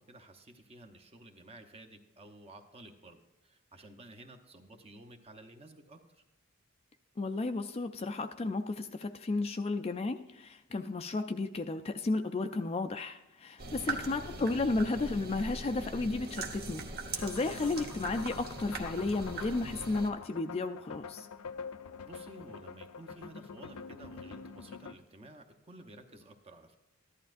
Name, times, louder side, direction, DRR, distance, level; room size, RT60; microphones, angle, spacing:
voice 1, 0.0-6.2 13.9-14.2 22.0-26.8, right 1 dB, 25° right, 5 dB, 0.8 m, -53 dB
voice 2, 7.2-16.9 17.1-21.3, left 3 dB, 25° left, 7 dB, 0.3 m, -33 dB
sound 1, 13.6-20.1, right 3 dB, 45° right, 1.1 m, -41 dB
sound 2, 17.1-25.0, left 5 dB, 80° left, 0.5 m, -46 dB
14.0 x 11.5 x 2.5 m, 0.99 s
head